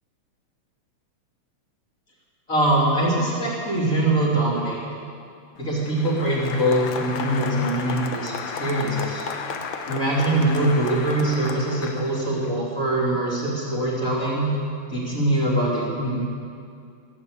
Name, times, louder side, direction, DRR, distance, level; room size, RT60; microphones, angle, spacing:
voice 1, 2.5-4.8 5.6-8.3 8.6-9.2 9.9-14.5 14.9-16.2, right 1 dB, 25° left, -6 dB, 3.6 m, -23 dB
Applause, 5.6-12.5, left 5 dB, 70° left, 1.1 m, -33 dB
18.0 x 8.1 x 8.8 m, 2.3 s
omnidirectional pair, 3.5 m